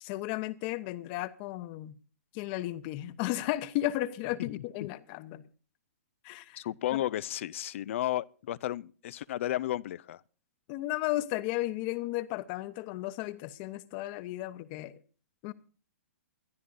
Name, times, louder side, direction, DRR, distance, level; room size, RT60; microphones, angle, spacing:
voice 1, 0.0-1.9 2.3-5.5 6.2-6.6 10.7-15.0 15.4-15.5, left 16 dB, 40° left, 1.0 m, -34 dB
voice 2, 4.4-4.9 6.6-10.2, left 13 dB, 60° left, 0.5 m, -33 dB
21.5 x 12.5 x 2.7 m
hypercardioid pair, 130°, 8 cm